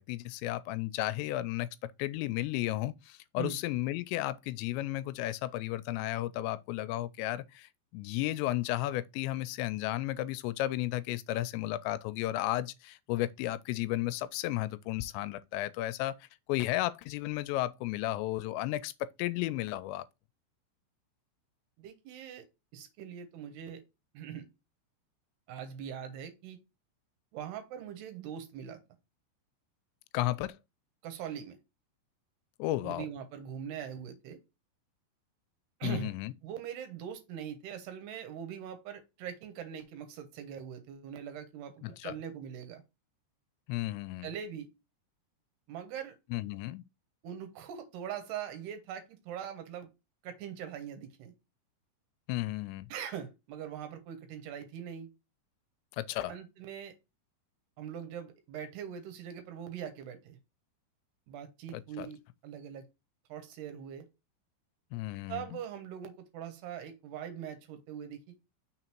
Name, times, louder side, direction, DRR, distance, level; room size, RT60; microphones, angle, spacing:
voice 1, 0.0-1.7 2.0-20.0 30.1-30.6 32.6-33.1 35.8-36.3 41.8-42.1 43.7-44.3 46.3-46.8 52.3-52.9 55.9-56.3 61.7-62.1 64.9-65.4, left 16 dB, 85° left, 2.8 m, -33 dB
voice 2, 21.8-22.5 22.7-23.8 24.1-24.5 25.5-26.6 27.3-28.8 31.0-31.6 32.8-34.4 35.8-36.1 36.4-42.8 44.2-44.7 45.7-46.2 47.2-49.9 50.2-51.3 52.9-55.1 56.3-56.9 57.8-60.4 61.3-62.8 63.3-64.1 65.3-68.4, right 9 dB, 75° right, 3.0 m, -42 dB
6.3 x 3.9 x 4.4 m
omnidirectional pair, 5.1 m